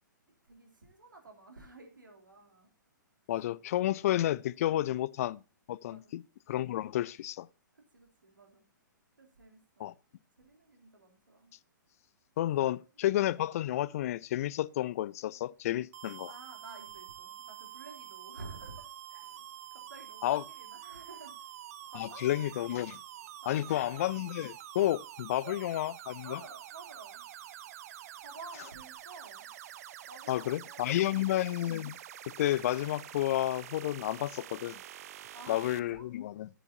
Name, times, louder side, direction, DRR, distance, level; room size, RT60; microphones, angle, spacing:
voice 1, 0.5-2.7 4.7-5.0 5.9-6.1 7.7-8.6 9.2-9.9 10.4-11.5 12.6-12.7 16.3-21.6 21.9-22.2 23.4-23.9 25.4-25.6 26.2-27.3 28.2-29.5 30.0-31.1 35.3-36.1, right 3 dB, 80° right, 3.2 m, -52 dB
voice 2, 3.3-5.4 5.7-6.2 6.5-7.5 9.8-9.9 12.4-16.3 20.2-20.4 21.9-23.0 23.5-26.4 30.3-32.0 32.3-34.8 35.5-36.5, left 13 dB, 45° left, 0.5 m, -31 dB
sound 1, 15.9-35.8, right 12 dB, 50° right, 0.8 m, -47 dB
12.0 x 10.5 x 2.8 m
figure-of-eight pair, 115°, 11 cm